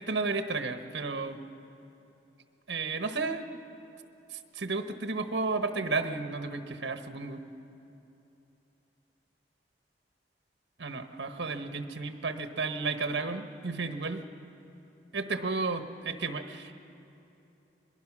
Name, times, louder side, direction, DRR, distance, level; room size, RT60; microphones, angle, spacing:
voice 1, 0.0-1.4 2.7-3.4 4.3-7.4 10.8-14.2 15.1-16.7, right 3 dB, 80° right, 7 dB, 1.2 m, -33 dB
22.5 x 21.5 x 6.1 m, 2.9 s
head